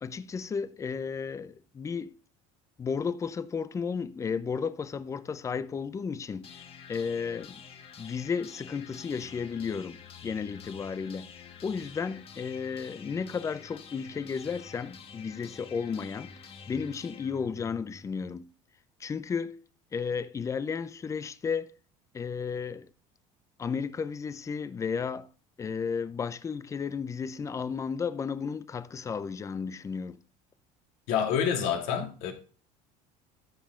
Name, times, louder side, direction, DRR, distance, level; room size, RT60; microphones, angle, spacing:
voice 1, 0.0-2.2 2.8-7.6 8.0-11.3 11.6-16.3 16.7-18.5 19.0-19.6 19.9-21.7 22.1-22.9 23.6-25.3 25.6-30.2, left 6 dB, 20° left, 0.5 m, -33 dB
sound 1, 6.4-18.4, left 7 dB, 40° left, 1.3 m, -48 dB
voice 2, 31.1-32.3, left 8 dB, 75° left, 2.5 m, -27 dB
13.5 x 5.5 x 3.7 m
cardioid pair, 130°, 16 cm